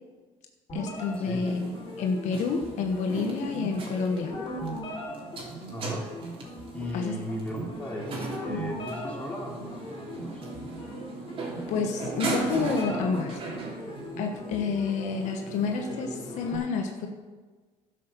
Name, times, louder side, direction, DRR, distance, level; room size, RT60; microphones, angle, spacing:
voice 1, 0.7-1.7 2.0-4.4 6.9-7.2 8.5-8.7 11.7-13.4 14.2-17.1, left 5 dB, 75° left, 4 dB, 1.2 m, -29 dB
sound 1, 0.7-16.6, equal, 40° left, 4.2 m, -39 dB
sound 2, 0.9-16.5, right 3 dB, 45° right, 3.1 m, -38 dB
voice 2, 5.7-6.1 6.7-10.5, equal, 10° left, -3 dB, 3.2 m, -37 dB
11.5 x 6.6 x 6.8 m, 1.4 s
cardioid pair, 105°, 13 cm